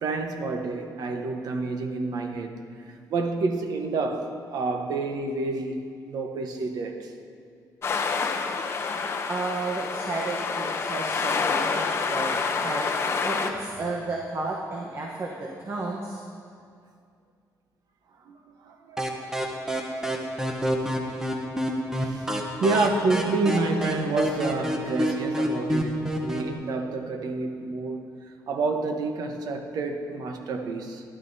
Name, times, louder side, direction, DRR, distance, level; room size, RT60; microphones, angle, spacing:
voice 1, 0.0-2.5 3.1-5.8 6.1-7.1 18.2-19.2 19.5-19.8 20.0-20.2 22.0-22.3 22.6-31.0, right 3 dB, 65° right, 4 dB, 1.0 m, -29 dB
sound 1, 7.8-13.5, left 5 dB, 35° left, 0.7 m, -28 dB
voice 2, 9.3-12.9 13.2-16.2, right 2 dB, 35° right, -1 dB, 1.0 m, -32 dB
sound 2, 19.0-26.5, equal, 5° right, 0.8 m, -29 dB
15.5 x 11.5 x 2.7 m, 2.3 s
cardioid pair, 145°, 7 cm